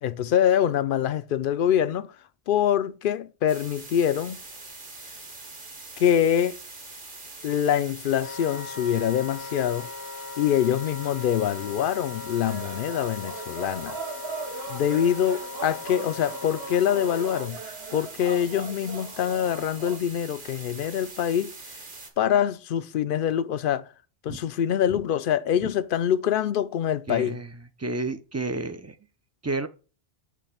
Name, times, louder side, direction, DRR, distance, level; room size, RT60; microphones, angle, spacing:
voice 1, 0.0-2.1 2.5-4.4 6.0-6.6 7.4-9.9 10.4-14.0 14.7-21.5 22.2-23.9 24.2-27.4, left 9 dB, 65° left, 0.7 m, -25 dB
sound 1, 3.5-22.1, right 3 dB, 55° right, 1.6 m, -43 dB
Wind instrument woodwind instrument, 8.2-17.5, left 5 dB, 85° left, 1.2 m, -39 dB
sound 2, 12.4-20.0, right 6 dB, 75° right, 1.2 m, -40 dB
voice 2, 27.1-27.5 27.8-28.9 29.4-29.7, right 3 dB, 25° right, 0.4 m, -30 dB
8.5 x 3.3 x 5.6 m
omnidirectional pair, 1.1 m